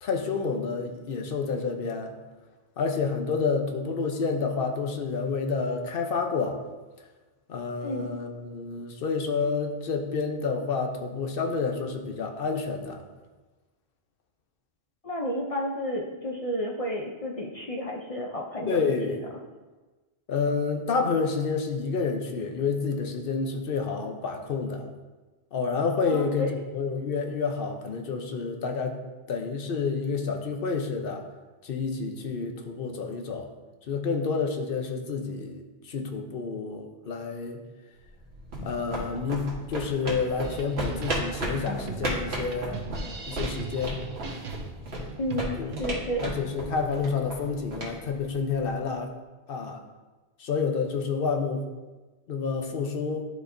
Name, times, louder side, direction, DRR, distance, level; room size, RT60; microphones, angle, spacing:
voice 1, 0.0-2.1 2.8-6.6 7.5-13.0 18.7-19.2 20.3-24.9 25.5-29.0 29.3-31.2 31.6-33.5 33.9-37.6 38.6-42.8 43.3-44.0 45.0-45.2 45.6-45.7 46.2-49.1 49.5-49.8 50.4-51.6 52.3-53.3, left 5 dB, 60° left, 4 dB, 0.9 m, -29 dB
voice 2, 15.0-18.9 26.0-26.5 45.2-46.2, equal, 40° left, -1 dB, 0.6 m, -31 dB
sound 1, 38.1-48.9, right 1 dB, 75° right, 1.6 m, -35 dB
sound 2, 40.4-45.8, right 5 dB, 45° right, 0.7 m, -39 dB
11.0 x 4.2 x 2.6 m, 1.2 s
omnidirectional pair, 1.1 m